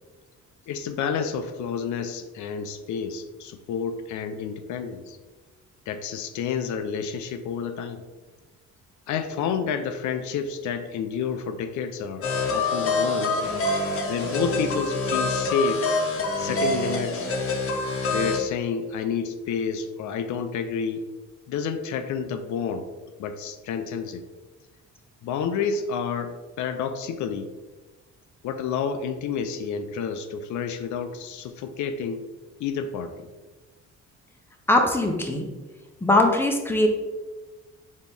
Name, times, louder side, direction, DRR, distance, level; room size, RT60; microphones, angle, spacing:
voice 1, 0.7-5.2 5.9-8.0 9.1-12.3 12.5-13.4 14.1-15.9 16.4-17.3 18.1-21.0 21.5-22.9 23.2-24.2 25.2-27.5 28.4-32.2 32.6-33.3, left 6 dB, 75° left, 8 dB, 0.5 m, -29 dB
sound 1, 12.2-18.4, left 3 dB, 45° left, 0.9 m, -26 dB
voice 2, 34.7-35.5 36.0-36.9, left 1 dB, 5° left, 2 dB, 0.7 m, -20 dB
4.2 x 3.1 x 3.5 m, 1.2 s
cardioid pair, 90°, 30 cm